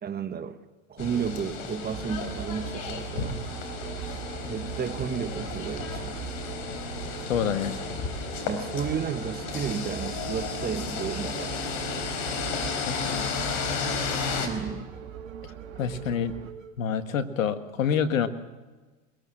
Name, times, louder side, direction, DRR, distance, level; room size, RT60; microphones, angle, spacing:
voice 1, 0.0-0.6 0.9-3.4 4.5-6.2 8.5-11.5 14.4-14.9, right 7 dB, 25° right, 1.4 m, -32 dB
sound 1, 1.0-14.5, left 5 dB, 55° left, 4.7 m, -33 dB
sound 2, 1.1-16.7, right 5 dB, 85° right, 2.9 m, -46 dB
sound 3, 1.9-16.5, right 10 dB, 60° right, 2.6 m, -40 dB
voice 2, 7.3-7.8 12.9-13.3 15.8-16.3 16.8-18.3, left 7 dB, 85° left, 1.8 m, -27 dB
22.0 x 22.0 x 7.7 m
hypercardioid pair, 100°, 39 cm